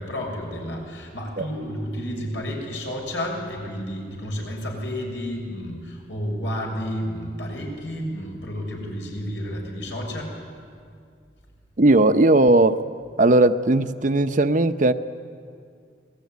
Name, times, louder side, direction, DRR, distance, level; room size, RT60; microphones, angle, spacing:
voice 1, 0.0-10.4, equal, 85° left, 0 dB, 7.0 m, -31 dB
voice 2, 11.8-12.8 13.2-14.9, right 2 dB, 45° right, 9 dB, 0.8 m, -17 dB
27.5 x 19.5 x 9.4 m, 2.3 s
head